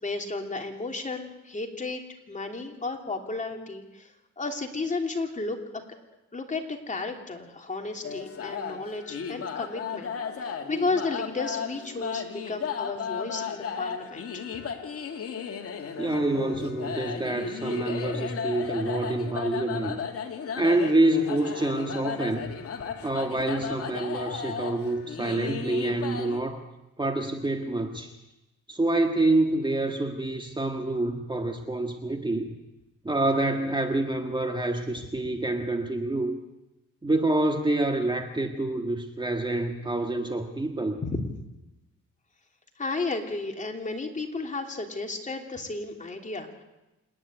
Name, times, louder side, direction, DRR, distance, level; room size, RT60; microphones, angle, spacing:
voice 1, 0.0-2.0 2.3-5.6 6.3-10.1 10.4-14.4 41.0-41.2 42.8-46.6, left 3 dB, 25° left, 2 dB, 3.2 m, -33 dB
sound 1, 8.0-26.4, left 6 dB, 50° left, 2.4 m, -35 dB
voice 2, 16.0-20.0 20.6-22.5 23.0-26.6 27.0-28.2 28.7-32.5 33.0-36.4 37.0-41.0, right 2 dB, 15° right, 5 dB, 1.7 m, -27 dB
27.5 x 11.0 x 9.6 m, 0.99 s
cardioid pair, 90°, 30 cm